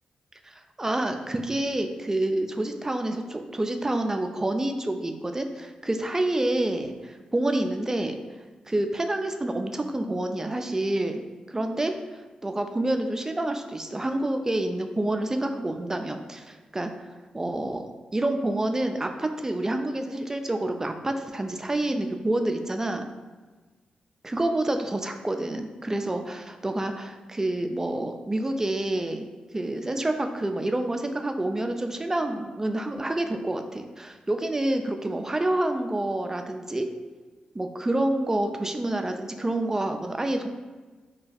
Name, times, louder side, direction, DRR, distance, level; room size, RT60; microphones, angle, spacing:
voice 1, 0.4-8.2 8.7-11.2 11.5-11.9 12.4-16.9 17.3-17.9 18.1-23.1 24.2-29.3 29.5-36.9 37.5-40.5, right 1 dB, 20° right, 6 dB, 0.3 m, -28 dB
2.4 x 2.3 x 4.0 m, 1.3 s
cardioid pair, 50°, 2 cm